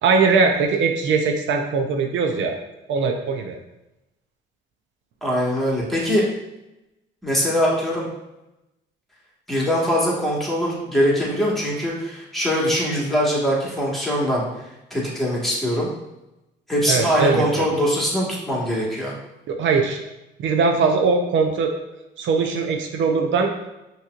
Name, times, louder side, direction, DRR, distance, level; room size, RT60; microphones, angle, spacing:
voice 1, 0.0-2.6 2.9-3.6 16.9-17.7 19.5-20.0 20.4-21.7 22.2-23.5, right 4 dB, 75° right, 4 dB, 0.5 m, -20 dB
voice 2, 5.2-6.2 7.2-8.1 9.5-14.4 14.9-15.9 16.7-19.1, equal, ahead, -5 dB, 1.5 m, -22 dB
5.6 x 3.0 x 2.4 m, 0.94 s
cardioid pair, 90°, 20 cm